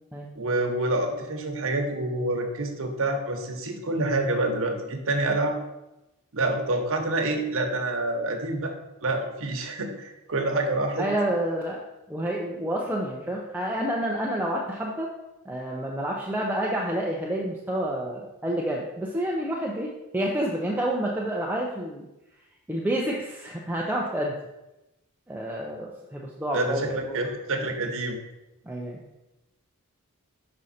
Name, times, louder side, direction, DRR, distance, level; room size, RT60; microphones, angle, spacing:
voice 1, 0.3-5.6 6.3-8.7 9.0-11.1 26.5-28.2, right 2 dB, 65° right, 3 dB, 1.1 m, -27 dB
voice 2, 11.0-11.8 12.1-15.1 15.5-22.1 22.7-24.3 25.3-27.2 28.7-29.0, right 1 dB, 10° right, -2 dB, 0.6 m, -29 dB
6.2 x 5.3 x 4.2 m, 0.97 s
head